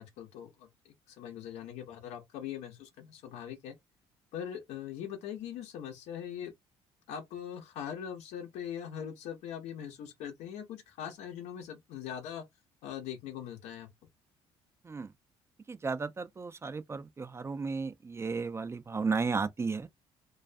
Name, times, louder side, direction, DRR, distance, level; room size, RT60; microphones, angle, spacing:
voice 1, 0.0-3.7 4.3-6.5 7.1-12.4 12.8-13.9, left 9 dB, 80° left, 0.7 m, -41 dB
voice 2, 15.7-19.9, right 4 dB, 25° right, 0.3 m, -34 dB
2.3 x 2.2 x 2.5 m
supercardioid pair, 80°, 11 cm